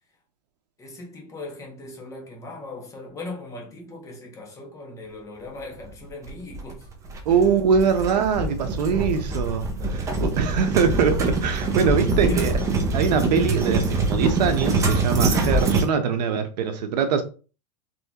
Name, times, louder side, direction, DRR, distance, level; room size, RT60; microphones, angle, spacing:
voice 1, 0.8-6.9 7.3-7.5 7.8-7.9 12.0-12.9, left 2 dB, 15° left, 1.2 m, -38 dB
sound 1, 6.2-15.9, right 3 dB, 15° right, 0.7 m, -24 dB
voice 2, 7.3-12.5 12.9-17.2, right 6 dB, 80° right, 0.9 m, -23 dB
4.2 x 3.2 x 2.9 m
supercardioid pair, 155°, 21 cm